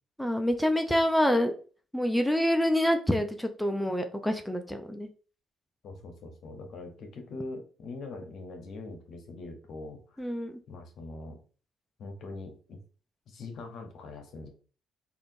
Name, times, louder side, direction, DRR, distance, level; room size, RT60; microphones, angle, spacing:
voice 1, 0.2-1.6 1.9-5.1 10.2-10.6, equal, 5° left, 5 dB, 0.4 m, -26 dB
voice 2, 5.8-10.3 10.7-11.4 12.0-12.8 13.3-14.5, left 3 dB, 60° left, 4 dB, 0.8 m, -42 dB
3.5 x 2.5 x 2.6 m, 0.38 s
hypercardioid pair, 55°, 0 cm